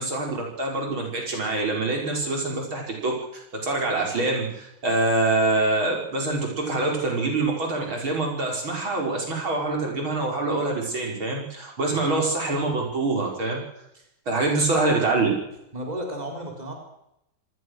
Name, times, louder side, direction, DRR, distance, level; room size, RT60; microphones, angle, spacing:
voice 1, 0.0-13.6 14.3-15.3, right 2 dB, 75° right, 0 dB, 5.9 m, -25 dB
voice 2, 15.7-16.7, right 1 dB, 20° right, 2 dB, 4.6 m, -33 dB
26.0 x 20.0 x 6.5 m, 0.82 s
omnidirectional pair, 2.3 m